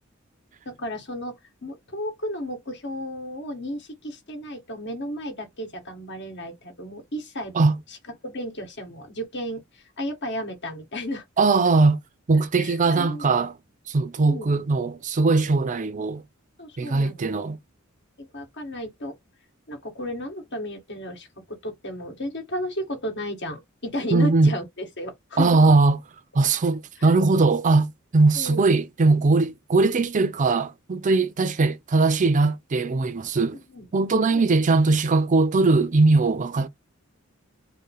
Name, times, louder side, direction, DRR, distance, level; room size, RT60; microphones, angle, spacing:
voice 1, 0.7-1.4 1.6-7.6 7.9-8.0 8.2-11.2 12.3-13.4 14.2-14.5 16.6-17.3 18.2-19.1 19.7-25.7 27.0-27.1 28.3-28.7 33.5-33.9 34.3-34.4, equal, 60° left, 1.9 m, -33 dB
voice 2, 11.4-12.0 12.3-13.6 13.9-16.2 16.8-17.6 24.1-24.5 25.4-26.0 26.3-33.6 33.9-36.7, right 3 dB, 35° right, 0.5 m, -20 dB
5.3 x 2.2 x 3.9 m
head